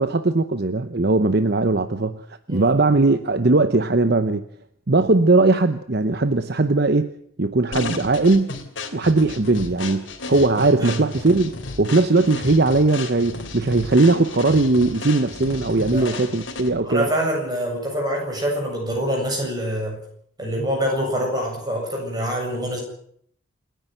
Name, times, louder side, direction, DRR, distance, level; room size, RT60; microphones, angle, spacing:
voice 1, 0.0-4.4 4.9-7.1 7.4-8.6 8.9-17.1, right 2 dB, 50° right, 0.9 m, -19 dB
sound 1, 7.7-16.9, left 3 dB, 65° left, 3.0 m, -33 dB
voice 2, 15.9-16.3 16.8-20.0 20.4-22.8, equal, 20° right, 7.7 m, -25 dB
28.5 x 10.5 x 9.2 m
head